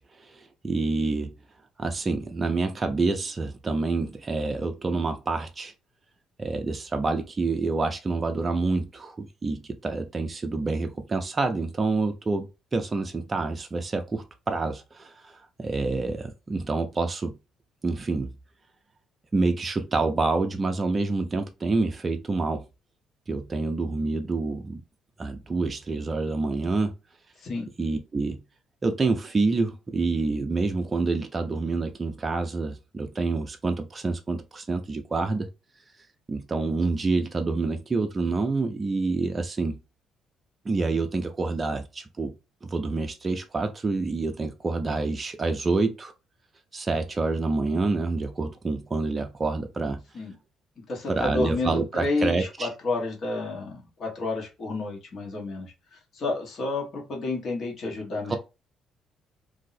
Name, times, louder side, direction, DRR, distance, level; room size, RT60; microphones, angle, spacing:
voice 1, 0.0-1.3 1.8-5.7 6.4-17.4 17.8-18.3 19.3-22.6 23.3-24.8 25.2-26.9 27.8-28.4 28.8-35.5 36.3-39.8 40.6-42.3 42.6-46.1 46.7-50.0 51.1-52.7 58.3-58.4, right 3 dB, 25° right, 0.4 m, -27 dB
voice 2, 50.9-55.7 56.1-58.4, left 3 dB, 50° left, 1.2 m, -30 dB
2.7 x 2.0 x 4.0 m
cardioid pair, 100°, 0 cm